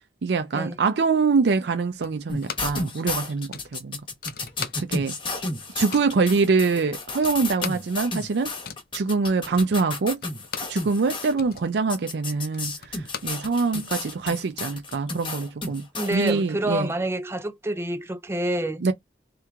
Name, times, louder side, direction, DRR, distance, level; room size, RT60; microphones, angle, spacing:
voice 1, 0.2-4.0 4.8-5.2 5.7-8.5 8.9-10.2 10.7-15.9 16.1-16.9 18.8-18.9, right 4 dB, 75° right, 0.4 m, -24 dB
sound 1, 2.0-2.9 3.1-3.2 3.5-5.2 5.5-6.2 6.7-6.8 7.0-10.8 11.2-13.9, left 7 dB, 55° left, 0.6 m, -39 dB
sound 2, 2.3-11.3 11.9-16.3, left 3 dB, 30° left, 1.0 m, -32 dB
voice 2, 16.0-18.8, right 1 dB, 15° right, 0.4 m, -27 dB
3.4 x 3.0 x 3.5 m
head